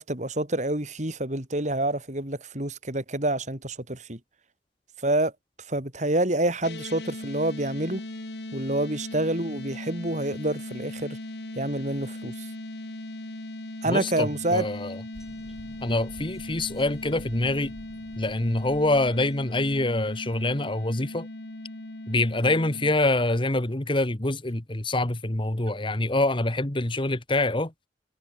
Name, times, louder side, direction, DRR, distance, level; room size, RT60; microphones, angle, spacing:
voice 1, 0.0-4.2 5.0-5.3 5.7-8.0 8.5-11.2 11.5-12.5 13.8-14.6, right 1 dB, 40° right, 4.8 m, -27 dB
sound 1, 6.6-22.9, left 1 dB, 70° left, 2.0 m, -38 dB
voice 2, 13.8-15.0 15.8-17.7 18.2-21.3 22.1-27.7, left 2 dB, 30° left, 1.4 m, -25 dB
sound 2, 15.1-19.5, equal, 5° right, 6.8 m, -49 dB
head